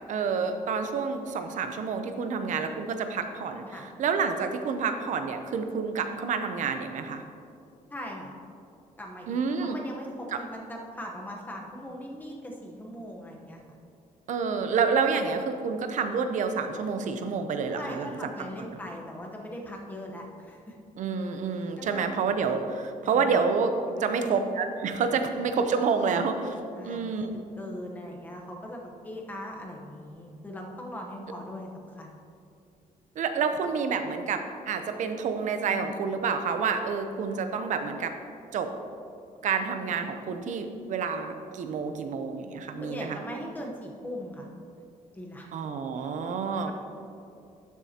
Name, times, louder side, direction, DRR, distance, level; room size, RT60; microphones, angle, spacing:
voice 1, 0.1-3.6 4.0-7.2 9.3-9.8 10.3-10.4 14.3-18.1 18.6-18.8 21.0-23.7 24.0-26.6 26.8-27.4 33.2-38.1 38.5-38.7 39.4-43.2 45.5-46.7, right 5 dB, 60° right, 7 dB, 0.7 m, -28 dB
voice 2, 7.9-8.3 9.0-13.6 17.7-20.8 21.8-22.1 23.0-23.4 23.9-24.4 25.1-25.3 26.7-32.2 42.8-44.5 45.1-45.5 46.6-46.7, equal, 10° left, 0 dB, 1.0 m, -40 dB
12.0 x 7.1 x 2.9 m, 2.5 s
cardioid pair, 165°, 15 cm